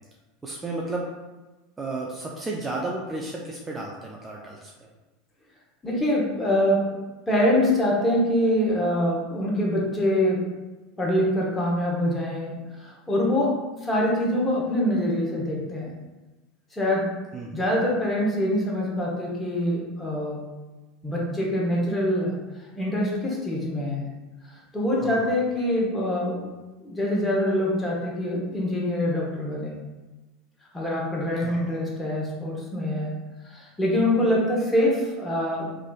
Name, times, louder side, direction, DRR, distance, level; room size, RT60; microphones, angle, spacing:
voice 1, 0.4-1.1 1.8-4.7 17.3-17.7 25.0-25.2 31.4-31.7, right 2 dB, 20° right, -2 dB, 0.4 m, -33 dB
voice 2, 5.8-7.0 7.3-10.4 11.0-13.5 13.8-15.9 16.7-17.0 17.5-20.4 21.0-22.3 22.7-24.0 24.7-26.4 26.8-29.8 30.7-33.1 33.5-35.7, left 1 dB, 15° left, -4 dB, 0.9 m, -24 dB
3.2 x 2.4 x 2.3 m, 1.1 s
figure-of-eight pair, 80°, 0 cm